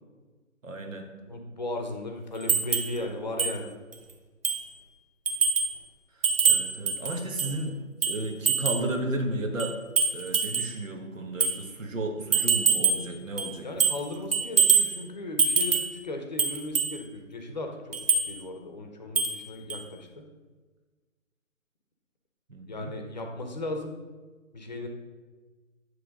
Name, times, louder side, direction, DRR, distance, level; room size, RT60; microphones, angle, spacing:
voice 1, 0.6-1.1 6.2-9.8 10.1-13.7 22.5-22.9, right 1 dB, 70° right, 3 dB, 1.4 m, -33 dB
voice 2, 1.3-3.7 13.6-18.0 18.3-20.2 22.7-23.9 24.5-24.9, left 2 dB, 35° left, 3 dB, 0.8 m, -36 dB
sound 1, 2.5-3.0 3.4-3.6 3.9-4.0 4.4-4.7 5.3-5.8 6.2-7.6 8.0-8.9 9.6-10.7 11.4-11.6 12.3-13.1 13.4-14.1 14.3-14.9 15.4-16.0 16.4-16.9 17.9-18.3 19.2-19.4 19.7-19.8, right 5 dB, 45° right, 0.8 m, -24 dB
9.7 x 3.3 x 5.2 m, 1.3 s
hypercardioid pair, 170°, 40 cm